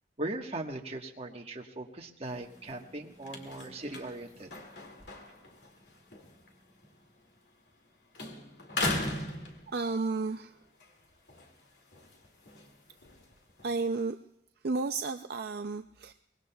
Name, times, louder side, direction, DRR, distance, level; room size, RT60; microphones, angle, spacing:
voice 1, 0.2-4.5, right 2 dB, 35° right, 2 dB, 1.4 m, -39 dB
sound 1, 2.2-7.9 8.1-10.2 10.6-13.7, left 2 dB, 70° left, 2.3 m, -40 dB
voice 2, 9.7-10.6 13.6-14.2 14.6-16.1, right 3 dB, 60° right, 6 dB, 0.5 m, -32 dB
24.0 x 20.5 x 2.3 m, 0.85 s
head